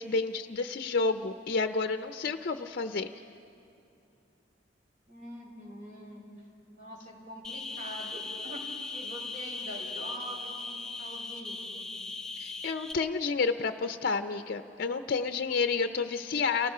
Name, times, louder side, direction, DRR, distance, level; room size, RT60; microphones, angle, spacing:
voice 1, 0.0-3.1 12.4-16.7, left 4 dB, 55° left, 8 dB, 0.6 m, -30 dB
voice 2, 5.1-6.2 6.7-8.6 8.9-11.9 15.7-16.1, equal, 50° right, -4 dB, 6.4 m, -45 dB
sound 1, 7.4-12.9, left 3 dB, 5° left, 0.7 m, -39 dB
28.5 x 19.0 x 4.9 m, 2.6 s
head